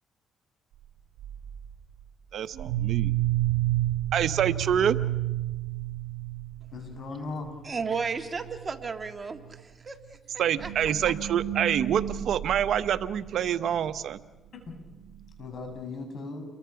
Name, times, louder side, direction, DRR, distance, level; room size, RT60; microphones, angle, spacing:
sound 1, 1.2-1.7 2.5-7.1 7.4-7.5 7.8-8.1 8.4-8.7 9.4-9.5 10.4-13.6, right 14 dB, 90° right, 1.0 m, -31 dB
voice 1, 2.3-3.1 4.1-5.0 10.4-14.2, right 9 dB, 70° right, 13 dB, 0.9 m, -26 dB
voice 2, 6.7-7.5 14.6-14.8 15.4-16.5, left 3 dB, 55° left, 4 dB, 6.8 m, -37 dB
voice 3, 7.6-10.7 11.0-11.1, right 5 dB, 35° right, 6 dB, 1.8 m, -34 dB
29.0 x 22.5 x 5.9 m, 1.1 s
cardioid pair, 90°, 0 cm